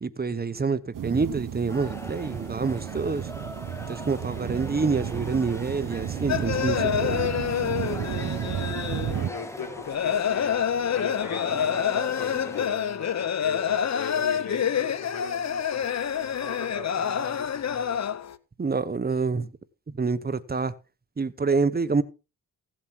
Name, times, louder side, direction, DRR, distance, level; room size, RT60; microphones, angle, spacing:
voice 1, 0.0-3.3 3.9-7.4 18.6-19.5 19.9-20.7 21.2-22.0, right 4 dB, 25° right, 0.9 m, -27 dB
sound 1, 0.9-9.3, right 10 dB, 60° right, 0.8 m, -32 dB
sound 2, 1.7-12.7, left 1 dB, 10° left, 2.0 m, -41 dB
sound 3, 6.3-18.4, left 8 dB, 50° left, 0.8 m, -27 dB
voice 2, 9.0-18.2, left 5 dB, 65° left, 4.1 m, -39 dB
15.5 x 7.4 x 4.6 m
cardioid pair, 75°, 36 cm